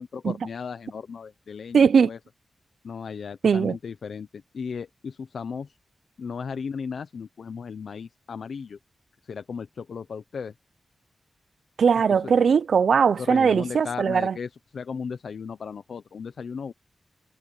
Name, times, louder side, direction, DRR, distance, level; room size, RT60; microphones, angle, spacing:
voice 1, 0.0-2.2 2.8-5.8 6.2-8.8 9.2-10.5 12.1-12.3 13.2-16.7, left 6 dB, 80° left, 0.8 m, -36 dB
voice 2, 1.7-2.1 3.4-3.8 11.8-14.3, right 6 dB, 85° right, 0.5 m, -20 dB
wide cardioid pair, 95°, 0 cm